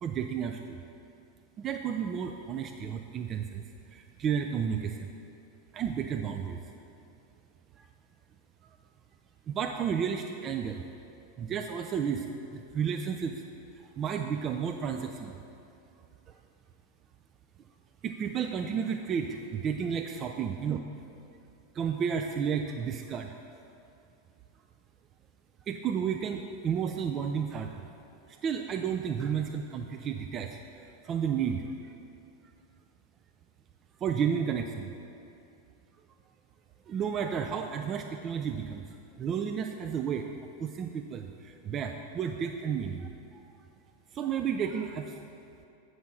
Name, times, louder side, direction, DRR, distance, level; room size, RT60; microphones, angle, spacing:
voice 1, 0.0-0.8 1.6-3.6 3.9-5.1 5.7-6.6 7.8-7.9 9.5-10.8 11.4-13.4 13.7-15.4 18.0-20.8 21.7-23.6 25.7-27.9 28.3-31.6 34.0-34.9 36.9-40.3 40.6-43.4 44.1-45.2, right 7 dB, 30° right, 5 dB, 0.3 m, -32 dB
7.8 x 6.3 x 3.8 m, 2.6 s
figure-of-eight pair, 90°, 0 cm